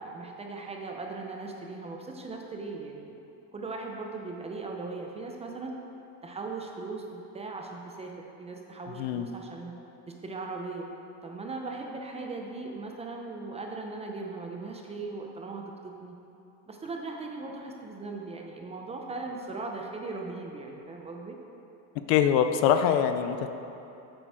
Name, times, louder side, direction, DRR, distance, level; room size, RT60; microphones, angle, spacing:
voice 1, 0.0-3.2 3.5-5.7 6.2-8.1 8.4-9.7 10.2-10.9 11.2-16.1 16.7-21.4, right 3 dB, 15° right, 1 dB, 0.5 m, -38 dB
voice 2, 22.1-23.5, left 9 dB, 60° left, 8 dB, 0.6 m, -23 dB
8.4 x 7.9 x 4.7 m, 2.9 s
cardioid pair, 150°, 42 cm